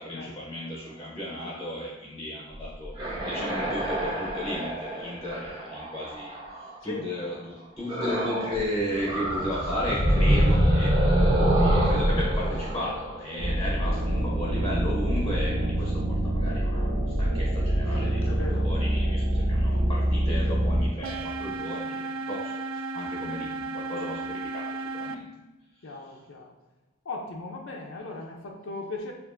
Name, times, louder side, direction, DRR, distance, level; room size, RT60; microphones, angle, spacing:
voice 1, 0.0-2.9 3.2-10.9 11.5-25.3, left 1 dB, 15° left, -3 dB, 0.7 m, -35 dB
sound 1, 2.6-6.8 7.9-8.6 8.9-13.8, equal, 25° right, 1.0 m, -25 dB
sound 2, 13.4-20.9, right 1 dB, 55° right, 0.7 m, -25 dB
voice 2, 18.2-18.7 25.8-26.5 27.1-29.1, left 3 dB, 65° left, 1 dB, 0.6 m, -37 dB
sound 3, 21.0-25.2, right 3 dB, 80° right, 0.3 m, -34 dB
6.8 x 2.5 x 2.5 m, 1.1 s
head